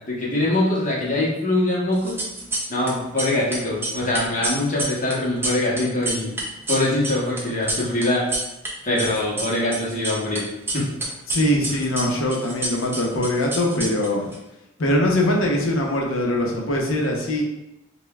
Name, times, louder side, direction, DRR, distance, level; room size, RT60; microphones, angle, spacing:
voice 1, 0.1-2.1 2.7-6.3 6.7-8.2 8.8-10.5 10.7-10.9, left 1 dB, 35° left, -5 dB, 0.8 m, -23 dB
sound 1, 2.0-2.9 3.2-8.7 9.0-10.4 10.7-14.4, right 2 dB, 10° right, 0.4 m, -28 dB
voice 2, 11.3-14.3 14.8-17.4, left 1 dB, 70° left, -1 dB, 0.7 m, -22 dB
5.3 x 2.2 x 2.2 m, 0.90 s
head